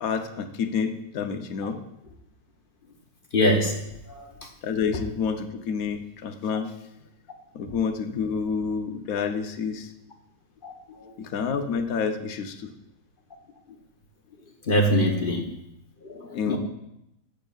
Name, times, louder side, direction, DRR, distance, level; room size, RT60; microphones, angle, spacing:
voice 1, 0.0-1.8 4.6-6.7 7.5-9.9 11.2-12.7 16.3-16.6, left 6 dB, 65° left, 7 dB, 1.1 m, -28 dB
voice 2, 3.3-3.8 4.1-4.3 10.6-10.7 11.0-11.1 14.7-15.5 16.0-16.6, equal, 45° left, 2 dB, 0.8 m, -23 dB
14.0 x 8.1 x 2.4 m, 0.83 s
omnidirectional pair, 1.7 m